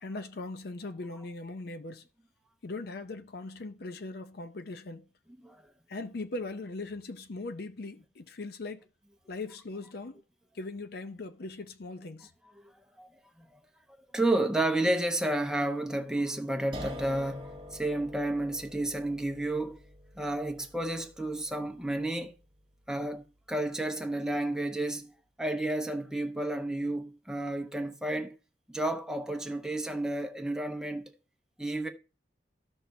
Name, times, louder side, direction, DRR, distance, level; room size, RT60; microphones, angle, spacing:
voice 1, 0.0-2.0 2.6-5.1 5.9-8.8 9.3-10.2 10.6-12.3, left 2 dB, 60° left, 0.6 m, -39 dB
voice 2, 14.1-19.8 20.2-22.3 22.9-25.1 25.4-28.4 28.7-31.1 31.6-31.9, right 1 dB, 5° right, 0.9 m, -31 dB
sound 1, 16.7-23.7, equal, 30° right, 1.3 m, -47 dB
13.5 x 6.0 x 2.7 m
head